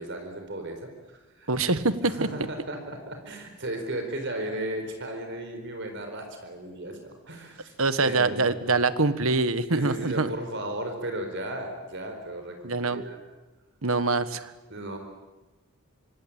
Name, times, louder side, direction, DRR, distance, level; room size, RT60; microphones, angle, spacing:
voice 1, 0.0-1.5 2.0-7.7 8.0-8.5 9.0-9.2 9.7-13.2 14.7-15.0, right 1 dB, 55° right, 5 dB, 4.5 m, -35 dB
voice 2, 1.5-2.3 7.8-10.3 12.6-13.0 13.8-14.5, right 3 dB, 70° right, 13 dB, 1.5 m, -24 dB
26.5 x 25.0 x 9.0 m, 1.1 s
head